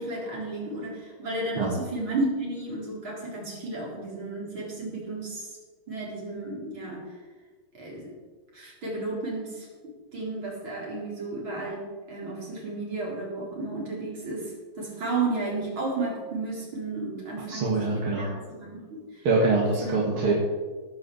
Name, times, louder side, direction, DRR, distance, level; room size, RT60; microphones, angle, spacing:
voice 1, 0.0-5.5 5.9-7.0 7.7-8.1 8.5-9.7 10.1-19.3 19.8-20.3, right 2 dB, 70° right, -4 dB, 4.9 m, -33 dB
voice 2, 17.5-18.3 19.2-20.3, right 3 dB, 85° right, -4 dB, 2.9 m, -24 dB
17.5 x 6.0 x 7.9 m, 1.4 s
omnidirectional pair, 2.3 m